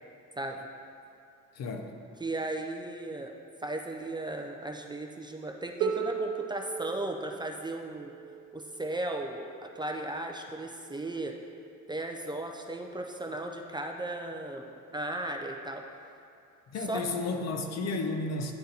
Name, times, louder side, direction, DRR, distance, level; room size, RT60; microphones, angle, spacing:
voice 1, 1.5-1.9 16.7-18.5, left 3 dB, 60° left, 4 dB, 0.7 m, -32 dB
voice 2, 2.2-3.3 3.6-8.1 8.5-11.4 11.9-14.7 14.9-15.8 16.9-17.1, right 2 dB, 15° right, 2 dB, 0.4 m, -36 dB
Harp, 5.8-11.6 12.6-12.7, right 7 dB, 80° right, 0.6 m, -38 dB
10.5 x 3.9 x 2.7 m, 2.5 s
cardioid pair, 90°, 30 cm